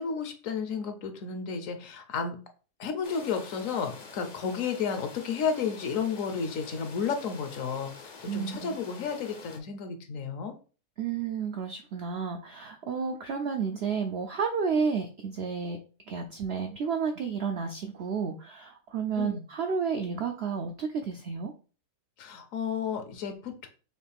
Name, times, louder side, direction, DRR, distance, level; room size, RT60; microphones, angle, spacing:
voice 1, 0.0-2.4 2.8-7.9 8.2-10.5 19.2-19.4 22.2-23.7, left 6 dB, 65° left, 7 dB, 1.0 m, -32 dB
sound 1, 3.0-9.6, left 4 dB, 50° left, 0.5 m, -47 dB
voice 2, 8.3-8.7 11.0-15.8 16.1-21.5, right 6 dB, 75° right, 5 dB, 0.6 m, -31 dB
6.2 x 2.4 x 3.4 m, 0.36 s
omnidirectional pair, 1.7 m